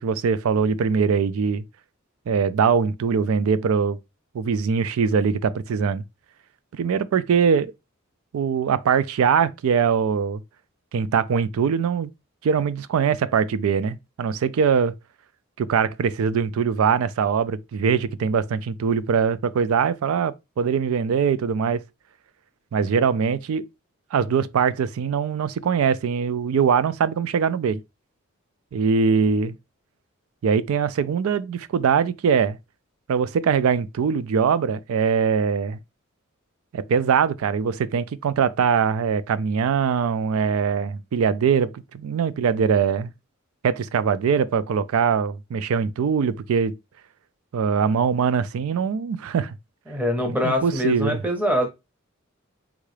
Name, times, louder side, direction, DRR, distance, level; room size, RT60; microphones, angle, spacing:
voice 1, 0.0-1.6 2.3-4.0 4.3-6.0 6.7-7.7 8.3-10.4 10.9-12.1 12.4-14.9 15.6-21.8 22.7-23.7 24.1-27.8 28.7-29.6 30.4-32.6 33.1-35.8 36.7-43.1 43.6-46.8 47.5-49.5 50.3-51.2, right 6 dB, 85° right, 0.3 m, -22 dB
voice 2, 49.9-51.7, left 1 dB, 5° right, 0.6 m, -23 dB
3.7 x 2.3 x 3.2 m
head